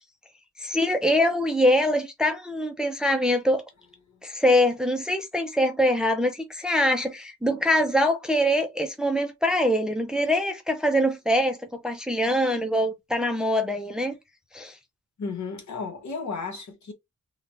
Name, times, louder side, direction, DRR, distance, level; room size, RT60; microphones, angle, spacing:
voice 1, 0.6-3.6 4.2-14.2 14.5-14.8, equal, ahead, 0.6 m, -23 dB
voice 2, 15.2-16.9, left 4 dB, 70° left, 1.4 m, -34 dB
3.7 x 2.4 x 2.7 m
wide cardioid pair, 115°, 30 cm